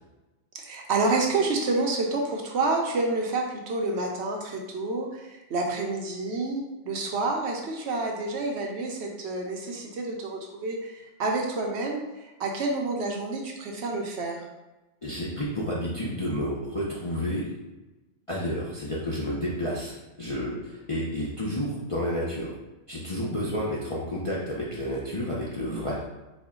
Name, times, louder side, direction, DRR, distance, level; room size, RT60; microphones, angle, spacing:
voice 1, 0.5-14.4, right 3 dB, 65° right, 1 dB, 0.8 m, -29 dB
voice 2, 15.0-17.5 18.3-22.5 22.9-26.0, equal, 45° left, -7 dB, 0.4 m, -30 dB
4.3 x 2.2 x 3.6 m, 1.1 s
omnidirectional pair, 1.3 m